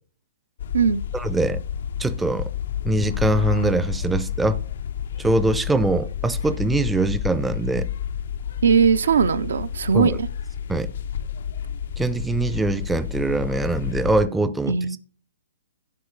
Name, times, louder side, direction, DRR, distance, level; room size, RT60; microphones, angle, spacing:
sound 1, 0.6-14.3, left 9 dB, 65° left, 0.4 m, -30 dB
voice 1, 1.1-1.6 2.0-2.5 2.8-4.6 5.2-7.9 9.9-10.2 10.7-10.9 12.0-15.0, right 2 dB, 5° right, 0.4 m, -23 dB
voice 2, 8.6-10.3 14.7-15.0, right 6 dB, 80° right, 0.6 m, -19 dB
10.5 x 4.7 x 4.6 m
hypercardioid pair, 145°, 0 cm